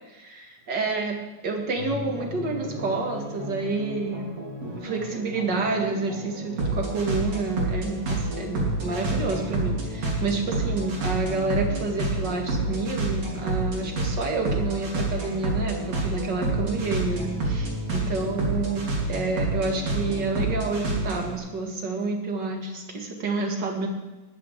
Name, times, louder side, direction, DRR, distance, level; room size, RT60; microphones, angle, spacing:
voice 1, 0.1-4.2 4.8-23.9, right 3 dB, 40° right, 2 dB, 2.3 m, -29 dB
sound 1, 1.7-21.4, right 2 dB, 55° right, 4.4 m, -29 dB
20.5 x 14.0 x 3.6 m, 1.1 s
omnidirectional pair, 3.6 m